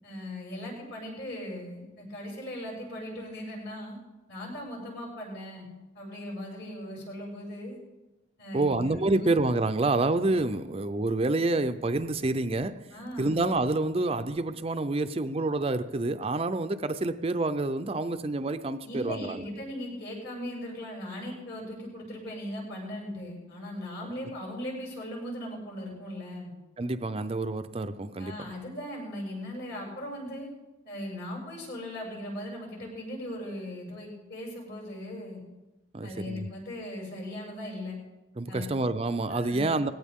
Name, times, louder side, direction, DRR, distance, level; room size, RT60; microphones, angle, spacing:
voice 1, 0.0-4.0 4.3-5.7 5.9-7.8 8.4-9.4 12.9-13.3 18.8-26.5 28.2-30.5 30.8-35.4 36.0-37.9 38.5-38.7 39.3-39.7, left 1 dB, 60° left, 7.1 m, -38 dB
voice 2, 8.5-12.9 13.2-19.5 26.8-28.5 35.9-36.5 38.4-39.9, right 2 dB, 30° right, 0.5 m, -28 dB
19.5 x 17.0 x 3.7 m
head